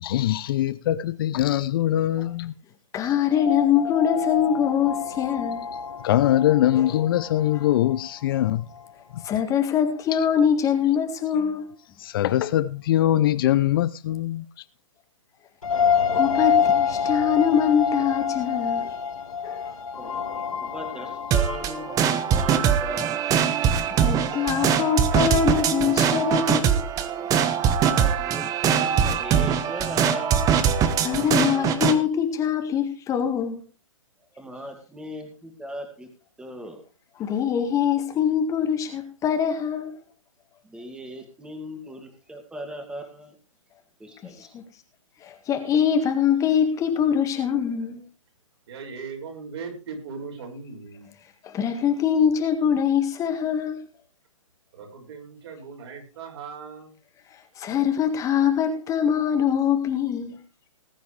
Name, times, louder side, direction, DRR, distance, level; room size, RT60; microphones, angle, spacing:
voice 1, 0.0-2.5 6.0-8.7 12.0-14.4, left 13 dB, 40° left, 0.6 m, -22 dB
voice 2, 2.9-5.7 6.8-6.9 9.2-11.7 16.1-19.0 19.4-19.7 23.9-26.8 31.0-33.6 37.2-40.0 44.5-44.6 45.2-48.0 51.4-53.8 57.6-60.4, left 8 dB, 20° left, 1.8 m, -23 dB
sound 1, 3.3-8.9 9.2-9.3 15.6-22.0, left 7 dB, 75° left, 4.6 m, -27 dB
voice 3, 20.6-23.2 27.8-30.6 34.3-36.1 36.4-36.8 40.6-43.4 44.0-44.5, equal, 5° right, 2.3 m, -38 dB
sound 2, 21.3-32.0, right 8 dB, 20° right, 1.3 m, -22 dB
voice 4, 48.7-51.1 54.7-57.0, right 5 dB, 55° right, 6.4 m, -38 dB
19.5 x 9.4 x 3.4 m
hypercardioid pair, 130°, 17 cm